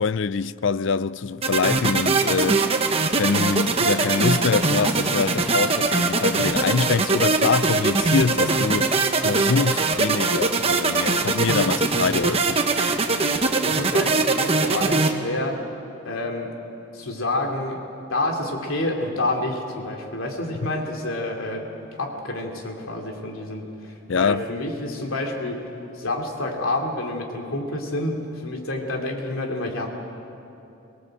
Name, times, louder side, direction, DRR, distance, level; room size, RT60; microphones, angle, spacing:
voice 1, 0.0-2.8 3.2-8.9 9.2-12.6 20.6-20.7 24.1-24.5, left 5 dB, 65° left, 0.5 m, -24 dB
sound 1, 1.4-15.1, right 3 dB, 30° right, 1.1 m, -22 dB
voice 2, 13.6-15.6 16.0-16.5 16.9-17.8 18.1-21.7 21.9-25.6 26.0-29.9, left 2 dB, 85° left, 3.0 m, -28 dB
23.5 x 18.5 x 8.0 m
head